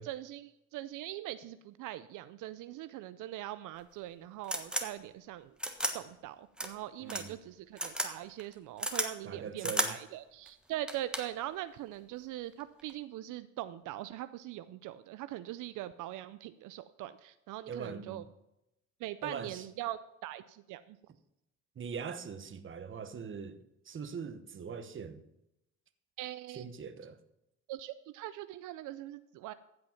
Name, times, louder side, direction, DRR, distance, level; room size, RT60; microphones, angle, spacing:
voice 1, 0.0-5.5 5.9-18.2 19.0-21.0 26.2-26.7 27.7-29.5, right 14 dB, 85° right, 0.5 m, -42 dB
sound 1, 3.8-3.9 4.4-4.9 5.6-5.9 6.6-6.7 7.1-7.2 7.8-8.1 8.4-9.1 9.6-9.9 10.5-10.6 10.9-11.4 12.6-12.9, right 1 dB, 5° right, 1.3 m, -33 dB
voice 2, 7.0-7.4 9.2-10.0 17.7-18.2 19.2-19.7 21.8-23.6 23.9-25.2 26.5-27.2, right 6 dB, 40° right, 1.0 m, -41 dB
15.0 x 5.2 x 5.8 m
cardioid pair, 90°, 30 cm